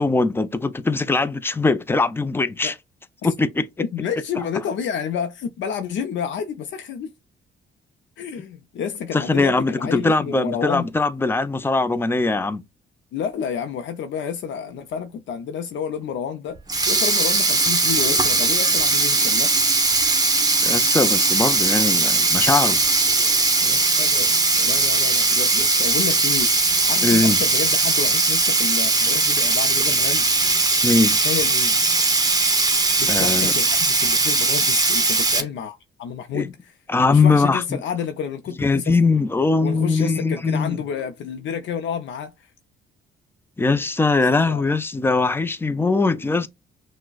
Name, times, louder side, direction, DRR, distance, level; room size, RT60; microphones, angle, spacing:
voice 1, 0.0-2.7 3.2-3.7 9.1-12.6 20.6-22.8 27.0-27.4 30.8-31.2 33.1-33.5 36.3-36.5 36.9-37.6 38.6-40.8 43.6-46.5, left 3 dB, 10° left, 0.4 m, -21 dB
voice 2, 3.8-7.1 8.2-10.9 13.1-16.6 16.9-19.8 23.6-26.5 26.8-30.3 31.2-31.8 33.0-36.8 37.1-39.0 39.6-42.5 44.5-44.6, left 7 dB, 70° left, 0.5 m, -30 dB
Sink (filling or washing), 16.6-35.4, right 3 dB, 20° right, 0.8 m, -19 dB
5.9 x 2.1 x 2.3 m
cardioid pair, 90°, 20 cm